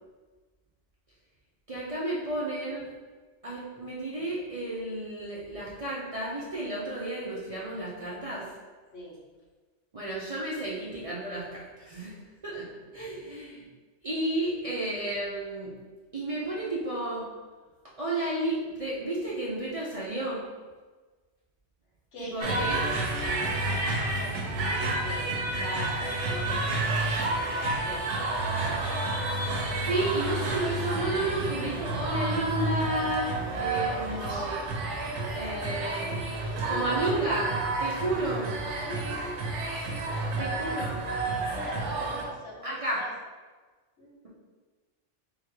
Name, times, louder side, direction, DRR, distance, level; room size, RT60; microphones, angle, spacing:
voice 1, 1.7-2.9 3.4-8.5 9.9-12.7 12.9-13.6 14.0-15.7 16.1-17.2 18.0-20.4 22.2-22.7 29.9-34.6 35.3-36.2 36.7-38.5 40.4-41.0 42.6-43.0, right 1 dB, 40° right, -7 dB, 0.6 m, -32 dB
voice 2, 22.1-26.9 27.4-28.2 35.0-36.9 38.8-39.4 39.7-41.0 41.5-43.1 44.0-44.2, left 1 dB, 70° left, -4 dB, 1.2 m, -42 dB
sound 1, 22.4-42.2, right 2 dB, 75° right, 1.0 m, -30 dB
3.7 x 3.5 x 3.1 m, 1.3 s
omnidirectional pair, 1.2 m